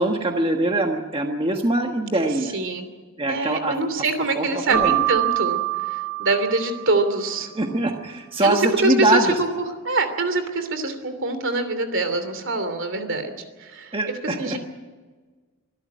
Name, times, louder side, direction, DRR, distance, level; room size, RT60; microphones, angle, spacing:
voice 1, 0.0-2.5 3.2-3.8 4.4-5.0 7.5-9.3 13.9-14.6, right 2 dB, 25° right, 3 dB, 1.4 m, -23 dB
voice 2, 2.5-2.8 3.3-5.6 5.9-7.5 8.4-9.5 9.8-13.3 13.6-13.9 14.4-14.6, right 2 dB, 60° right, 9 dB, 3.0 m, -24 dB
Keyboard (musical), 4.7-7.3, right 17 dB, 85° right, 3.0 m, -25 dB
24.5 x 13.0 x 9.4 m, 1.4 s
head